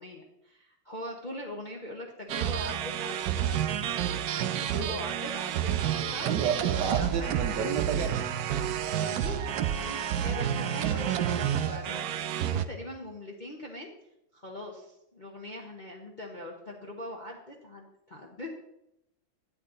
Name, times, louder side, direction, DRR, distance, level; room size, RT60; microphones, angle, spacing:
voice 1, 0.0-4.0 4.6-7.3 8.9-13.9 14.3-18.5, left 1 dB, 35° left, -1 dB, 0.8 m, -41 dB
sound 1, 2.3-12.7, right 10 dB, 85° right, 0.8 m, -29 dB
voice 2, 4.7-5.0 6.2-8.2, right 7 dB, 65° right, 6 dB, 1.3 m, -31 dB
10.0 x 8.6 x 3.8 m, 0.82 s
omnidirectional pair, 2.2 m